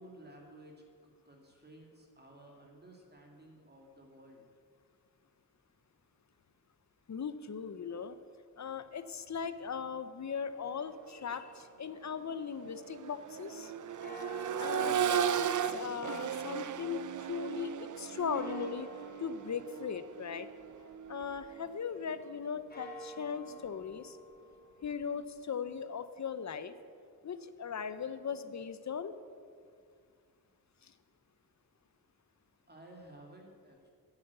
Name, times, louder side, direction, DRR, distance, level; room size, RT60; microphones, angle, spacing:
voice 1, 0.0-4.4 32.7-33.9, right 1 dB, 25° right, 1 dB, 2.3 m, -55 dB
voice 2, 7.1-8.2 8.6-13.7 14.6-18.9 19.2-20.5 21.1-24.2 24.8-26.8 27.2-29.1 30.8-30.9, left 6 dB, 50° left, 12 dB, 0.7 m, -39 dB
sound 1, 10.8-12.9 14.0-17.4 18.3-21.3 22.5-26.5, equal, 25° left, 2.6 m, -53 dB
Accelerating revving vroom, 11.3-11.5 11.9-21.8 23.5-23.6, right 8 dB, 55° right, 0.5 m, -36 dB
9.5 x 9.1 x 8.2 m, 2.1 s
wide cardioid pair, 105°, 37 cm